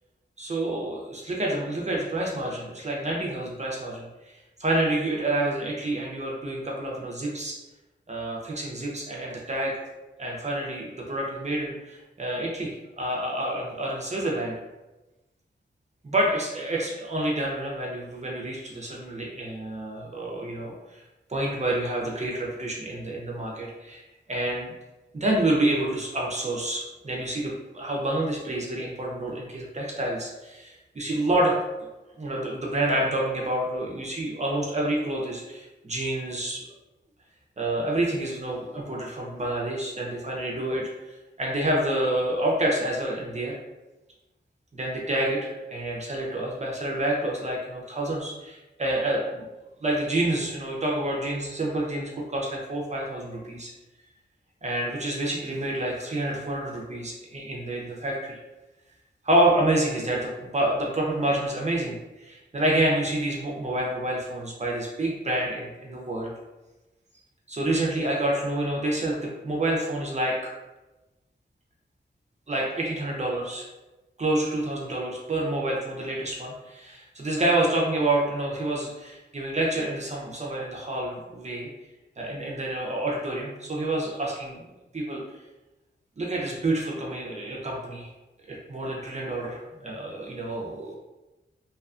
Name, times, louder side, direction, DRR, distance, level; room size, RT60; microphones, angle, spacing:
voice 1, 0.4-4.3 4.6-7.6 8.1-9.7 10.2-14.5 16.0-21.0 21.3-24.0 24.3-24.7 25.1-31.6 32.2-36.6 37.6-43.6 44.7-49.4 49.8-53.7 54.6-58.4 59.2-66.3 67.5-70.4 72.5-73.7 74.2-81.7 82.2-84.6 84.9-85.2 86.2-88.1 88.5-91.0, right 1 dB, 40° right, -2 dB, 0.5 m, -28 dB
2.6 x 2.2 x 2.4 m, 1.1 s
wide cardioid pair, 70°, 19 cm